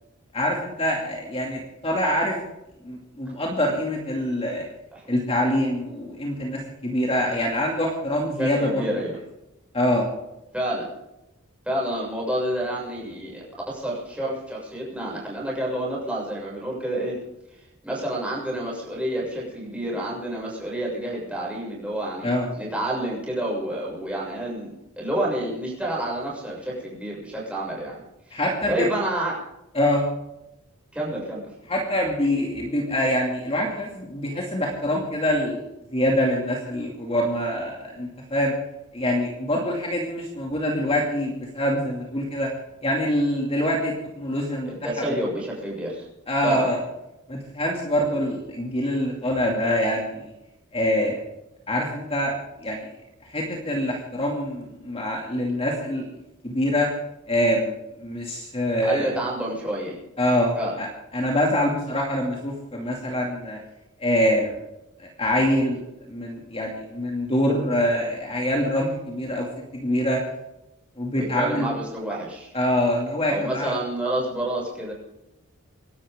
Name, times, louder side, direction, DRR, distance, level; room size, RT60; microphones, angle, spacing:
voice 1, 0.3-2.4 2.8-4.7 5.1-9.0 9.7-10.0 22.2-22.5 28.3-28.9 29.7-30.1 31.7-35.6 35.9-38.5 38.9-42.5 42.8-45.1 46.3-46.8 47.3-50.3 50.7-51.2 51.7-52.3 52.6-52.9 53.3-56.0 56.4-56.9 57.3-59.1 60.2-60.9 61.1-63.6 64.0-64.6 65.0-65.8 66.1-69.5 69.7-70.2 71.0-71.7 72.5-73.7, left 1 dB, 25° left, -1 dB, 2.5 m, -25 dB
voice 2, 8.4-9.2 10.5-10.9 11.6-17.2 17.8-22.3 22.6-28.0 28.3-28.4 28.7-29.4 30.9-31.5 44.7-46.1 46.4-46.7 58.8-60.0 60.5-60.7 71.1-72.5 73.3-74.9, right 1 dB, 5° right, -4 dB, 6.7 m, -29 dB
25.5 x 12.0 x 3.7 m, 0.90 s
head